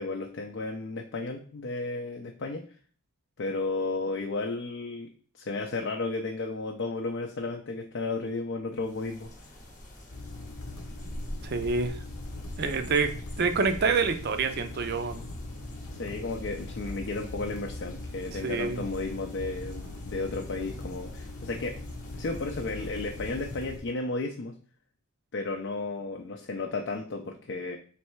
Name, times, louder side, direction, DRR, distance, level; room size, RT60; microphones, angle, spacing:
voice 1, 0.0-2.6 3.4-5.1 5.3-9.3 15.9-21.8 22.2-24.5 25.3-27.8, left 3 dB, 55° left, 2 dB, 0.5 m, -33 dB
sound 1, 8.7-23.8, left 1 dB, 35° left, 0.9 m, -46 dB
sound 2, 10.1-23.8, left 2 dB, 85° left, 0.8 m, -41 dB
voice 2, 11.4-12.0 12.6-15.2 18.4-18.8, right 4 dB, 45° right, 9 dB, 0.5 m, -27 dB
3.3 x 3.2 x 4.5 m, 0.44 s
head